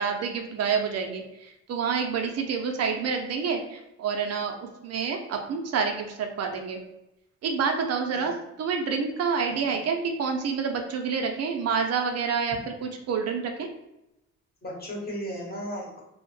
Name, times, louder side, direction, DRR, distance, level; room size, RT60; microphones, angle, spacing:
voice 1, 0.0-4.6 4.8-6.8 7.4-8.3 8.6-13.7, right 5 dB, 55° right, 3 dB, 0.5 m, -28 dB
voice 2, 14.6-16.0, equal, 30° left, -2 dB, 1.0 m, -35 dB
2.7 x 2.0 x 3.1 m, 0.89 s
cardioid pair, 90°, 30 cm